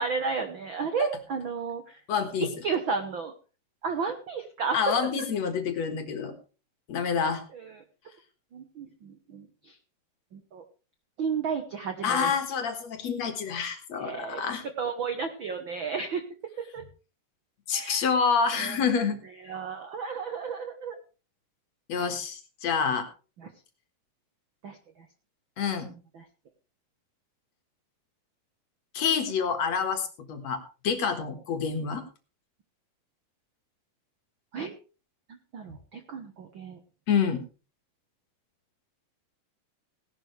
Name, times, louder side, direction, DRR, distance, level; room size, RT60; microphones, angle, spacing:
voice 1, 0.0-2.0 2.4-3.3 3.8-4.9 7.5-7.8 8.5-9.8 10.3-10.6 11.2-12.3 13.9-14.4 14.8-16.2 16.7-16.8 17.7-18.1 18.5-18.8 19.4-21.0 23.4-23.5 24.6-25.1 25.9-26.2 34.5-34.7 35.3-36.8, right 5 dB, 70° right, 7 dB, 1.2 m, -33 dB
voice 2, 2.1-2.5 4.7-6.3 6.9-7.4 12.0-14.6 17.7-19.2 21.9-23.1 25.6-25.9 28.9-32.0 37.1-37.4, left 6 dB, 55° left, 7 dB, 2.6 m, -27 dB
17.5 x 11.5 x 3.3 m, 0.34 s
omnidirectional pair, 3.9 m